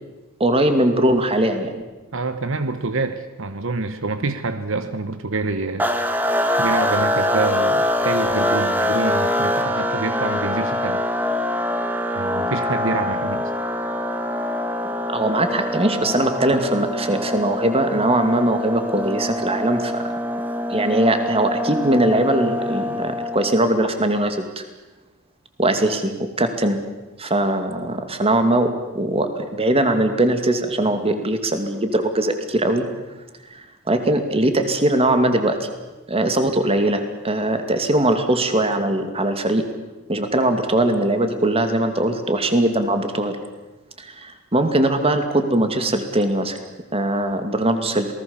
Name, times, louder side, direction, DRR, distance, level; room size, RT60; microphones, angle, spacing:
voice 1, 0.4-1.8 15.1-20.0 20.7-24.6 25.6-26.8 27.2-28.7 28.9-32.8 33.5-35.7 36.1-39.6 40.1-43.4 44.0-46.6 46.9-48.1, right 1 dB, 25° right, 7 dB, 2.5 m, -20 dB
voice 2, 2.1-5.9 6.6-11.0 12.1-13.5, right 3 dB, 65° right, 10 dB, 1.1 m, -26 dB
sound 1, 5.8-23.6, left 1 dB, 10° right, 1.6 m, -24 dB
27.5 x 19.0 x 7.2 m, 1.2 s
head